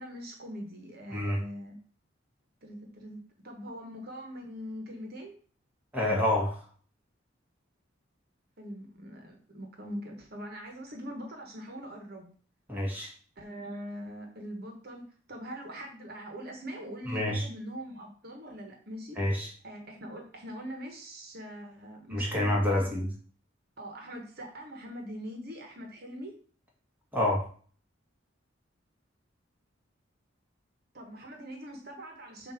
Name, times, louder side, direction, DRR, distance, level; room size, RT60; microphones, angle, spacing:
voice 1, 0.0-1.8 2.6-5.3 8.6-12.3 13.4-19.2 19.6-23.0 23.8-26.3 30.9-32.5, equal, 55° right, 2 dB, 1.3 m, -42 dB
voice 2, 1.1-1.4 5.9-6.6 12.7-13.1 17.1-17.5 19.2-19.5 22.1-23.1 27.1-27.5, left 1 dB, 10° right, -3 dB, 1.8 m, -28 dB
7.2 x 2.8 x 5.9 m, 0.44 s
head